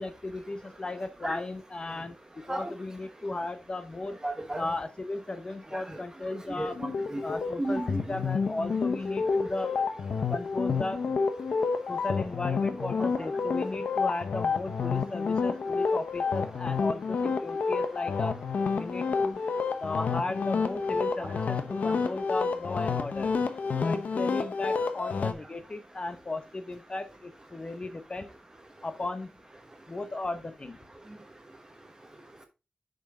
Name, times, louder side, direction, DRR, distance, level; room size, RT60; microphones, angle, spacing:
voice 1, 0.0-4.2 4.5-6.8 7.2-9.7 10.3-11.0 11.9-18.3 18.7-19.4 19.8-23.4 23.8-28.3 28.8-29.3 29.9-30.8, left 2 dB, 35° left, 10 dB, 0.9 m, -35 dB
voice 2, 4.2-4.7 5.7-6.0 6.6-7.2 7.6-8.0 13.0-13.3 21.2-21.3, right 1 dB, 25° right, 5 dB, 1.2 m, -34 dB
sound 1, 6.8-25.3, left 5 dB, 75° left, 0.8 m, -29 dB
6.6 x 5.5 x 3.7 m, 0.28 s
wide cardioid pair, 75°, 3 cm